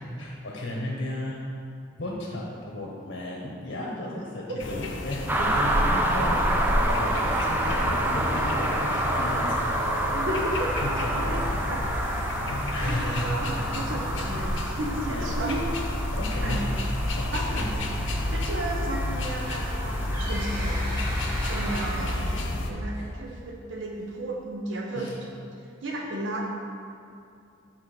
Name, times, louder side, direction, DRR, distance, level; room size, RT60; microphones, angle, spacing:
voice 1, 0.2-1.4 2.0-9.7 10.8-11.6 12.7-13.4 15.0-15.4 16.1-16.6 17.1-17.7 18.2-18.3 24.9-25.1, left 1 dB, 65° left, -3 dB, 1.0 m, -34 dB
sound 1, 4.6-22.7, left 1 dB, 90° left, 0.7 m, -32 dB
sound 2, 5.3-21.9, right 1 dB, 10° right, 0.5 m, -28 dB
voice 2, 10.1-10.7 11.2-11.8 12.8-15.6 16.4-16.7 17.3-21.0 21.5-25.3 25.6-26.6, right 1 dB, 80° right, 0 dB, 0.8 m, -34 dB
sound 3, 20.1-23.3, right 1 dB, 50° right, 1.5 m, -38 dB
5.0 x 4.5 x 5.9 m, 2.5 s
head